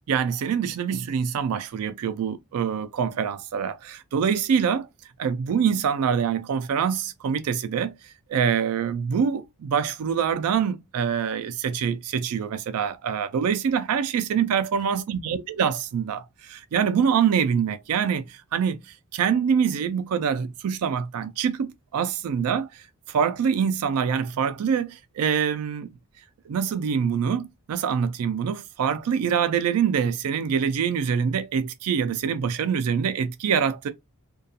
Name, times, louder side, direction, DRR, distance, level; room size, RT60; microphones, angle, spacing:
voice 1, 0.1-4.9 5.2-25.9 26.5-33.9, right 7 dB, 75° right, 0.3 m, -25 dB
2.3 x 2.2 x 2.7 m
head